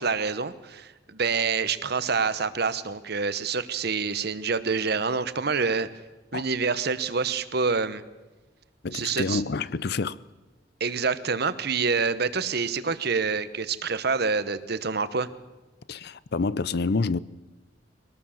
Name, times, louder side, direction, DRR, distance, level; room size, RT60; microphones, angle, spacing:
voice 1, 0.0-5.9 6.3-8.0 8.9-9.4 10.8-15.3, right 5 dB, 60° right, 1.0 m, -27 dB
voice 2, 8.8-10.2 15.9-17.2, left 4 dB, 60° left, 0.6 m, -27 dB
22.5 x 18.0 x 7.3 m
head